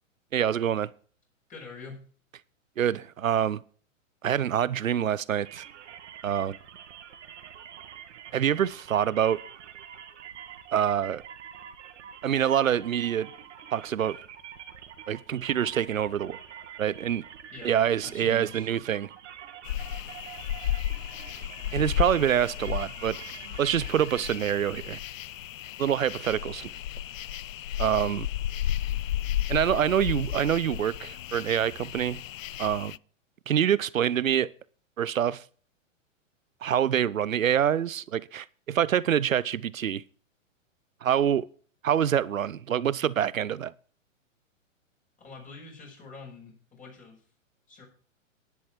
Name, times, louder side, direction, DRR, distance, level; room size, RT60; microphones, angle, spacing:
voice 1, 0.3-0.9 2.8-3.6 4.2-5.6 6.2-6.6 8.3-9.4 10.7-11.2 12.2-13.3 13.7-14.2 15.1-16.4 16.8-17.2 17.6-19.1 21.7-23.2 23.6-25.0 25.8-26.7 27.8-28.3 29.5-32.2 32.6-33.0 33.5-34.5 35.0-35.4 36.6-40.0 41.0-41.5 41.8-43.7, right 9 dB, 90° right, 0.8 m, -26 dB
voice 2, 1.5-2.0 17.5-17.7 18.0-18.7 45.2-47.2 47.7-47.8, left 4 dB, 20° left, 5.3 m, -45 dB
sound 1, 5.4-24.3, right 9 dB, 60° right, 2.1 m, -46 dB
sound 2, 19.6-33.0, left 12 dB, 80° left, 0.5 m, -33 dB
12.0 x 10.5 x 4.5 m
hypercardioid pair, 125°, 39 cm